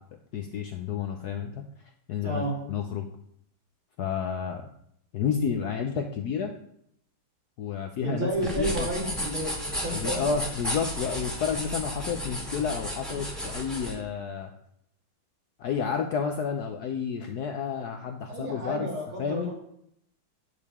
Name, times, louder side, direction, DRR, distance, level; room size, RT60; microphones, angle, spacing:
voice 1, 0.3-1.6 2.1-2.4 2.7-3.1 4.0-4.7 5.1-6.5 7.6-8.3 8.6-8.9 9.9-14.5 15.6-18.9 19.2-19.5, left 6 dB, 70° left, 4 dB, 0.9 m, -30 dB
voice 2, 2.2-2.6 8.0-10.2 11.5-11.6 18.3-19.5, right 1 dB, 75° right, -4 dB, 3.3 m, -31 dB
sound 1, 8.3-13.9, equal, ahead, 1.6 m, -33 dB
8.5 x 6.7 x 3.5 m, 0.71 s
omnidirectional pair, 2.3 m